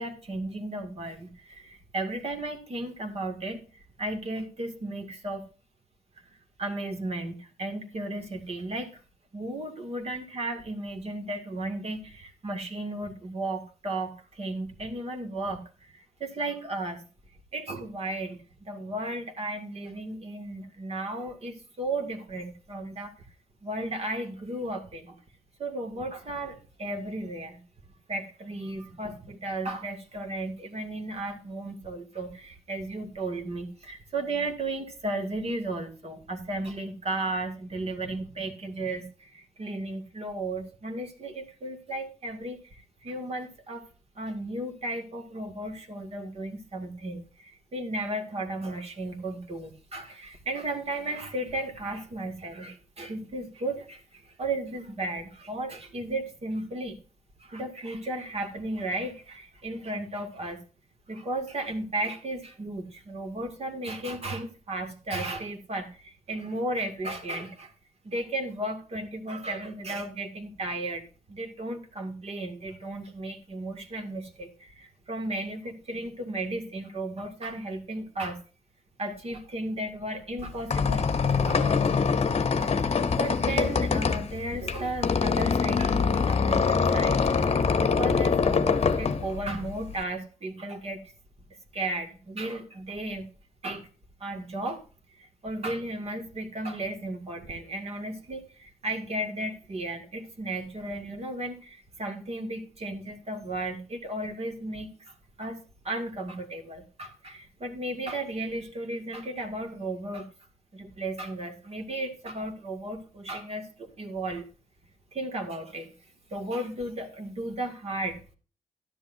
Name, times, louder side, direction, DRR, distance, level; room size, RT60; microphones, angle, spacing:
voice 1, 0.0-5.4 6.6-9.0 9.3-17.0 17.5-23.3 23.6-25.2 25.6-27.6 28.1-43.9 44.2-57.0 57.4-60.6 61.1-67.7 68.0-78.4 79.0-82.0 82.6-91.0 91.7-93.3 93.6-93.9 94.2-94.8 95.1-105.6 105.8-110.3 110.7-114.5 115.1-115.9 116.3-118.2, right 2 dB, 50° right, 5 dB, 2.2 m, -34 dB
Squeak, 80.4-90.0, left 5 dB, 45° left, 0.9 m, -24 dB
12.5 x 10.5 x 2.6 m, 0.36 s
cardioid pair, 95°, 14 cm